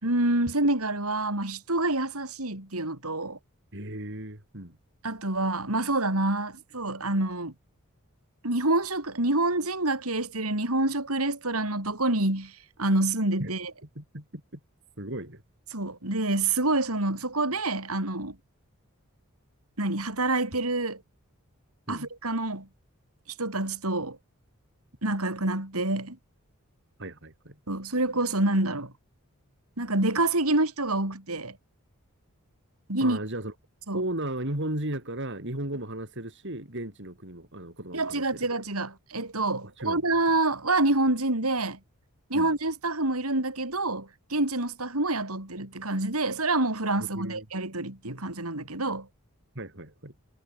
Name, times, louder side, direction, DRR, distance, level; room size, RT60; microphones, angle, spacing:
voice 1, 0.0-3.4 5.0-7.5 8.4-12.5 12.8-13.7 15.7-18.4 19.8-21.0 21.9-22.7 23.4-24.2 25.0-26.2 27.7-28.9 29.8-31.6 32.9-33.2 33.9-34.0 37.9-41.8 42.3-49.1, right 2 dB, 90° right, 5.9 m, -27 dB
voice 2, 3.7-4.8 13.4-13.5 13.8-14.4 15.0-15.4 21.9-22.1 27.0-27.6 33.0-33.5 33.9-38.4 39.6-40.0 42.3-42.5 47.1-47.5 49.6-50.1, right 1 dB, 55° right, 5.4 m, -35 dB
head